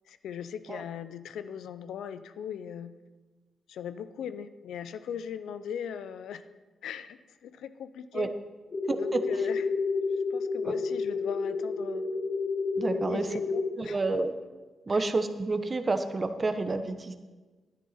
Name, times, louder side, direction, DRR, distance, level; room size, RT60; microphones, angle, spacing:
voice 1, 0.1-2.9 3.7-6.4 6.8-8.3 8.9-9.6 9.9-10.0 10.3-12.0 12.9-14.0 14.9-15.0, left 8 dB, 75° left, 11 dB, 0.5 m, -39 dB
sound 1, 8.7-13.7, left 4 dB, 50° left, 2.1 m, -30 dB
voice 2, 8.9-9.2 10.6-10.7 12.8-13.4 13.8-14.3 14.9-17.1, right 3 dB, 35° right, 9 dB, 1.0 m, -29 dB
11.5 x 10.0 x 4.3 m, 1.3 s
hypercardioid pair, 45°, 0 cm